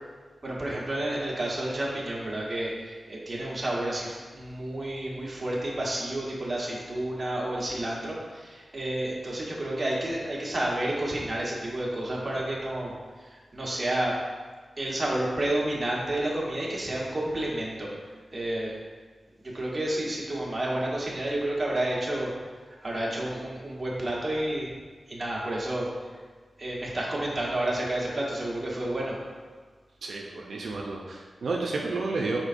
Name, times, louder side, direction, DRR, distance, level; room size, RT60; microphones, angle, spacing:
voice 1, 0.4-12.9 13.2-14.2 14.8-17.9 18.3-18.8 19.4-22.3 22.8-24.7 25.1-25.9 26.6-29.2, right 1 dB, 30° right, -5 dB, 1.1 m, -30 dB
voice 2, 30.0-32.4, right 3 dB, 85° right, -1 dB, 0.4 m, -31 dB
4.9 x 4.3 x 2.5 m, 1.5 s
wide cardioid pair, 100°, 0 cm